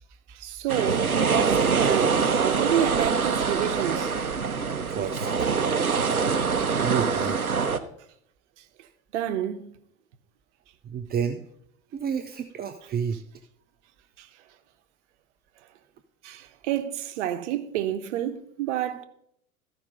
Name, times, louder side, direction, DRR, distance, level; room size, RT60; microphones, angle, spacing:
voice 1, 0.3-4.2 9.1-9.7 14.2-14.3 16.2-19.0, right 11 dB, 55° right, 1.0 m, -29 dB
sound 1, 0.7-7.8, right 5 dB, 90° right, 0.6 m, -24 dB
voice 2, 4.9-5.5 6.8-7.7 10.8-11.4 11.9-13.2, right 7 dB, 25° right, 0.6 m, -30 dB
14.0 x 5.1 x 5.4 m
figure-of-eight pair, 75°, 42 cm